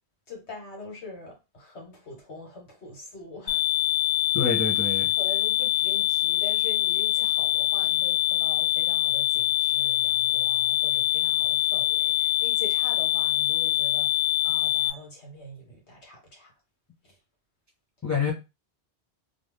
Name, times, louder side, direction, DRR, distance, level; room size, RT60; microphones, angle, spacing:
voice 1, 0.3-3.6 5.2-16.5 17.0-17.2, left 1 dB, 85° left, 1.6 m, -43 dB
sound 1, 3.5-14.9, left 15 dB, 65° left, 0.7 m, -24 dB
voice 2, 4.3-5.1 18.0-18.3, left 5 dB, 25° left, 0.4 m, -27 dB
2.7 x 2.4 x 3.4 m
omnidirectional pair, 1.1 m